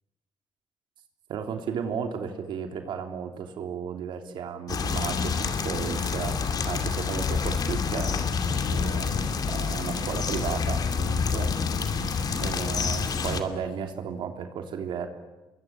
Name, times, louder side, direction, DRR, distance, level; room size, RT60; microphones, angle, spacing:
voice 1, 1.3-6.4 6.6-8.2 8.7-9.2 9.5-11.5 12.4-15.1, right 7 dB, 75° right, 5 dB, 3.2 m, -34 dB
sound 1, 4.7-13.4, left 5 dB, 50° left, 2.5 m, -28 dB
28.5 x 22.0 x 8.9 m, 1.1 s
cardioid pair, 115°, 8 cm